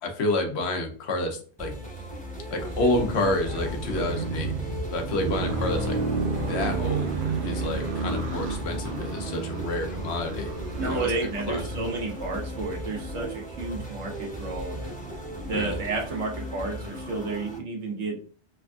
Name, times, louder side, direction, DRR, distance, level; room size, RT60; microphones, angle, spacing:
voice 1, 0.0-1.8 2.5-4.5 4.9-6.0 6.3-10.5 10.8-11.1 11.5-11.6 15.5-15.8, left 2 dB, 70° left, 4 dB, 0.9 m, -29 dB
sound 1, 1.6-17.6, right 1 dB, 10° left, 0.6 m, -37 dB
sound 2, 2.7-16.1, right 3 dB, 60° right, 0.7 m, -33 dB
voice 2, 10.8-14.9 15.5-18.2, right 3 dB, 80° right, 0 dB, 1.2 m, -31 dB
3.4 x 2.5 x 2.2 m, 0.42 s
omnidirectional pair, 1.2 m